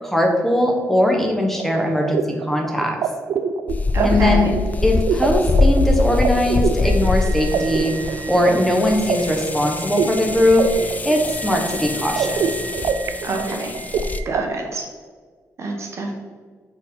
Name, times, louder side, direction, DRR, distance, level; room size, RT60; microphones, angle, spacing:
voice 1, 0.0-3.0 4.0-4.5 4.8-7.9 8.3-10.6 11.0-12.5, left 1 dB, 5° left, 1 dB, 0.9 m, -20 dB
sound 1, 1.6-14.4, right 6 dB, 75° right, 0.4 m, -26 dB
sound 2, 3.7-14.2, left 3 dB, 30° left, 0.4 m, -24 dB
voice 2, 3.9-4.5 13.2-13.7 14.2-14.9 15.6-16.1, right 2 dB, 55° right, 1 dB, 1.2 m, -26 dB
4.4 x 4.0 x 5.3 m, 1.6 s
cardioid pair, 95°, 6 cm